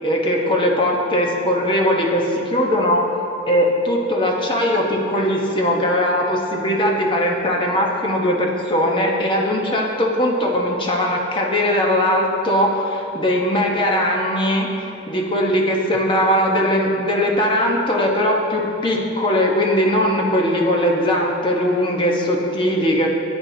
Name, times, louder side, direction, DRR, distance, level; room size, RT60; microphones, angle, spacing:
voice 1, 0.0-3.2 3.5-23.1, equal, 25° left, -1 dB, 1.1 m, -20 dB
13.0 x 9.0 x 2.8 m, 2.7 s
head